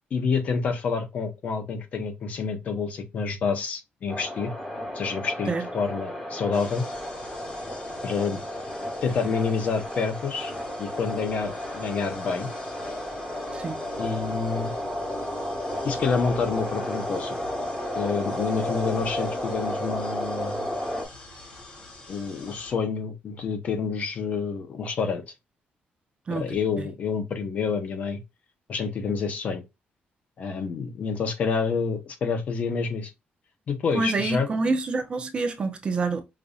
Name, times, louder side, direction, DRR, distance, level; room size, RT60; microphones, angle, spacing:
voice 1, 0.1-4.5 4.9-6.8 8.0-8.4 9.0-10.5 10.8-12.5 14.0-14.7 15.8-17.4 18.0-20.7 22.1-25.2 26.3-28.2 28.7-29.6 30.4-33.1 33.7-34.5, left 5 dB, 45° left, 0.7 m, -28 dB
sound 1, 4.1-21.1, left 1 dB, 10° left, 1.3 m, -32 dB
sound 2, 6.5-22.8, left 2 dB, 30° left, 1.6 m, -47 dB
voice 2, 33.9-36.2, right 3 dB, 30° right, 0.5 m, -27 dB
5.3 x 2.6 x 2.3 m
cardioid pair, 180°, 4 cm